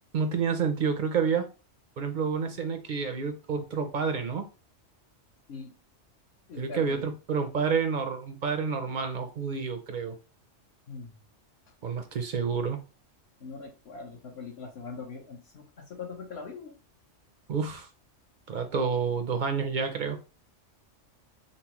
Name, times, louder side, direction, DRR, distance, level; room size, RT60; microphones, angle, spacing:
voice 1, 0.1-1.5 2.0-4.4 6.6-10.1 11.8-12.8 17.5-17.9 18.5-20.2, right 6 dB, 55° right, 0.5 m, -29 dB
voice 2, 6.5-7.1 10.9-11.2 11.7-11.8 13.4-16.7, left 4 dB, 65° left, 1.0 m, -42 dB
5.3 x 2.0 x 2.9 m
omnidirectional pair, 1.2 m